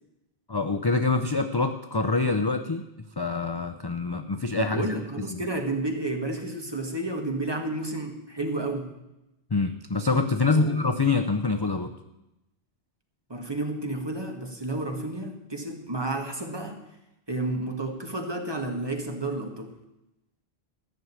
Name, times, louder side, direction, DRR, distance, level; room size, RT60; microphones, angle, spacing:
voice 1, 0.5-2.8 3.2-5.0 9.5-11.9, left 3 dB, 30° left, 7 dB, 0.5 m, -25 dB
voice 2, 4.5-8.9 10.5-10.8 13.3-16.8 17.3-19.7, right 2 dB, 25° right, 3 dB, 1.6 m, -31 dB
14.0 x 6.4 x 9.5 m, 0.91 s
omnidirectional pair, 1.1 m